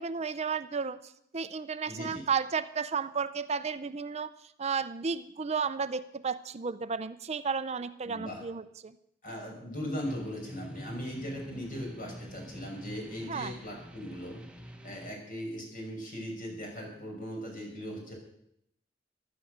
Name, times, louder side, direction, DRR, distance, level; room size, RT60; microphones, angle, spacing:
voice 1, 0.0-4.3 4.6-8.9 13.3-13.5, right 5 dB, 35° right, 13 dB, 0.5 m, -33 dB
voice 2, 1.9-2.3 8.0-8.4 9.2-14.4 14.8-18.1, equal, 50° left, 0 dB, 5.9 m, -39 dB
sound 1, 10.0-15.1, equal, 5° right, 1.2 m, -46 dB
15.5 x 12.0 x 6.5 m, 0.75 s
head